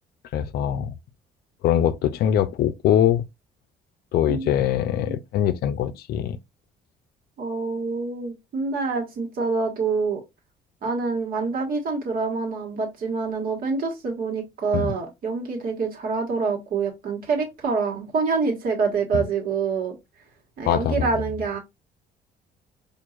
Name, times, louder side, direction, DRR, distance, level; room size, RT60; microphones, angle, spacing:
voice 1, 0.3-0.9 1.6-3.2 4.1-6.4 14.7-14.9 19.1-19.2 20.7-21.1, left 10 dB, 70° left, 0.5 m, -22 dB
voice 2, 4.3-5.2 7.4-10.2 10.8-20.0 20.6-21.6, right 4 dB, 60° right, 1.5 m, -26 dB
4.5 x 2.6 x 2.4 m
cardioid pair, 110°, 17 cm